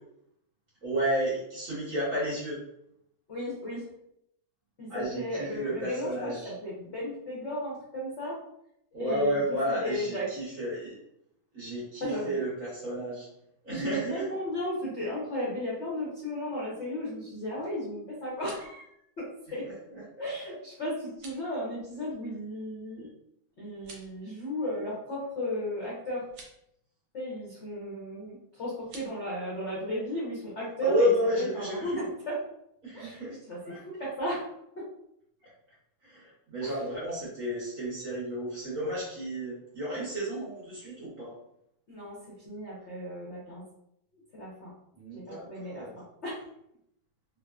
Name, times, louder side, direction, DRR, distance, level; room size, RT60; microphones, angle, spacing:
voice 1, 0.8-2.6 4.9-6.5 8.9-11.0 11.5-13.3 13.6-14.3 19.6-20.6 30.8-32.1 32.8-33.4 33.6-33.8 36.0-41.3 44.9-45.9, equal, 50° right, -8 dB, 1.1 m, -32 dB
voice 2, 3.3-3.9 4.8-8.4 9.0-9.5 9.8-10.3 12.0-12.4 13.7-18.8 19.2-19.6 20.2-23.1 23.6-26.3 27.1-32.4 32.9-33.2 33.5-33.6 33.8-34.5 34.7-34.9 36.6-36.7 41.9-42.2 42.4-43.6 44.3-44.7 45.1-45.9 46.2-46.4, equal, 80° left, -6 dB, 0.6 m, -34 dB
sound 1, 18.2-18.8 21.1-21.5 23.7-24.2 26.2-26.6 28.8-29.1, right 3 dB, 70° right, 1.4 m, -50 dB
3.8 x 2.0 x 2.3 m, 0.77 s
omnidirectional pair, 2.4 m